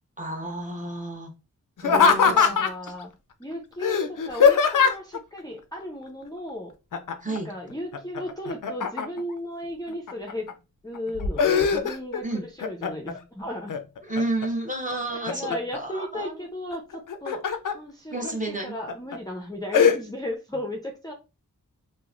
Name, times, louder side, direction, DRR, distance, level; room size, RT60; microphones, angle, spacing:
voice 1, 0.2-1.3 1.8-2.6 7.2-7.5 12.2-12.4 14.1-16.4 18.1-18.8, right 2 dB, 20° right, 0 dB, 1.0 m, -31 dB
Laughter, 1.8-2.9 3.8-5.2 6.9-7.4 7.7-9.3 9.9-10.5 10.9-12.2 12.6-13.2 13.7-14.5 14.9-15.8 16.9-17.7 18.3-18.4 18.9-19.2 19.7-20.0, left 6 dB, 65° left, 0.4 m, -21 dB
voice 2, 1.9-3.1 3.4-6.7 7.3-10.5 10.8-13.7 15.1-17.5 17.7-21.1, left 1 dB, 10° left, -1 dB, 0.5 m, -35 dB
3.0 x 2.1 x 2.4 m, 0.29 s
wide cardioid pair, 45°, 34 cm